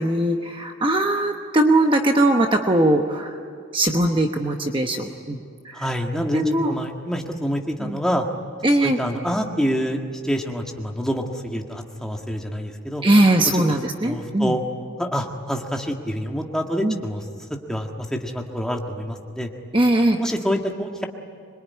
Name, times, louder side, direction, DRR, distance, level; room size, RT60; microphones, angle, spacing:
voice 1, 0.0-3.4 3.7-5.9 6.3-6.7 7.8-8.0 8.6-9.0 13.0-14.6 16.8-17.0 19.7-20.2, right 1 dB, 25° right, 4 dB, 1.0 m, -20 dB
voice 2, 5.7-8.3 8.8-13.0 13.5-13.6 14.0-14.6 15.0-17.2 17.7-19.5 20.2-21.0, equal, 5° left, 1 dB, 1.7 m, -27 dB
25.5 x 22.5 x 9.6 m, 2.2 s
head